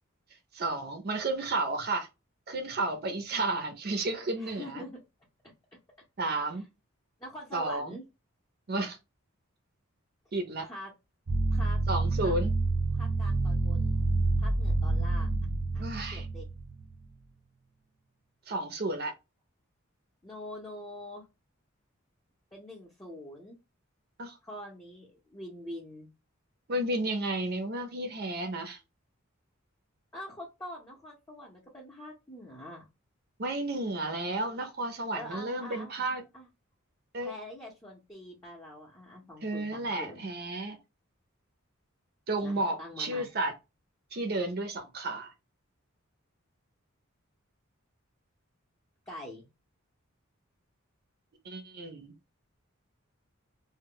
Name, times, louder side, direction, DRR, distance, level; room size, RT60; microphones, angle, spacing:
voice 1, 0.5-2.1 2.5-4.8 6.2-6.6 7.5-8.0 8.7-9.0 10.3-10.7 11.9-12.5 15.8-16.3 18.5-19.1 24.2-24.4 26.7-28.8 33.4-36.2 37.1-37.3 39.4-40.8 42.3-43.5 44.1-45.3 51.4-52.1, right 2 dB, 50° right, 0.5 m, -32 dB
voice 2, 4.4-5.0 7.2-8.0 10.6-10.9 11.5-11.8 12.2-12.4 12.9-14.0 14.4-15.3 15.7-16.5 20.2-21.3 22.5-23.6 24.4-26.1 30.1-32.9 35.1-36.5 37.2-40.2 42.4-43.3 49.1-49.5, equal, 15° left, 0.6 m, -44 dB
sound 1, 11.3-17.0, right 2 dB, 85° right, 0.7 m, -28 dB
2.2 x 2.0 x 3.7 m
head